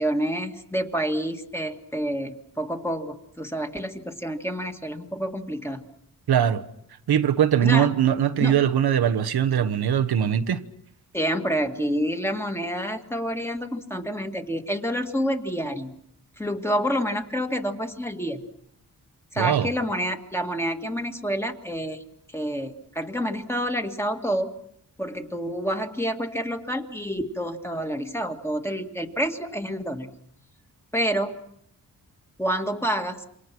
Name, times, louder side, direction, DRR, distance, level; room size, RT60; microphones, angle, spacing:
voice 1, 0.0-5.8 7.6-7.9 8.4-8.6 11.1-16.0 16.4-18.4 19.3-22.0 22.3-24.5 25.0-30.1 30.9-31.4 32.4-33.2, equal, 5° left, 2.1 m, -28 dB
voice 2, 6.3-6.6 7.1-10.6 19.4-19.7, right 9 dB, 90° right, 1.2 m, -21 dB
28.0 x 24.5 x 6.1 m
wide cardioid pair, 100°, 37 cm